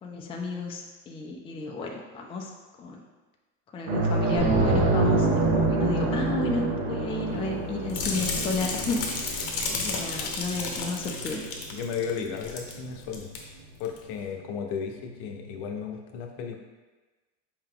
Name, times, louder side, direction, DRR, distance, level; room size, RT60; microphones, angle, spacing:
voice 1, 0.0-2.5 2.8-3.0 3.7-11.4, left 3 dB, 15° left, 0 dB, 0.4 m, -33 dB
sound 1, 3.9-12.8 13.1-13.3 15.4-15.5, right 2 dB, 65° right, 0.9 m, -27 dB
sound 2, 4.4-6.3, right 2 dB, 20° right, 0.7 m, -30 dB
sound 3, 7.9-12.8 13.0-13.4 13.8-14.0, left 4 dB, 40° left, 0.8 m, -32 dB
voice 2, 11.7-13.3 13.8-16.6, left 6 dB, 70° left, 3 dB, 0.7 m, -34 dB
4.6 x 2.8 x 3.7 m, 1.2 s
supercardioid pair, 115°, 38 cm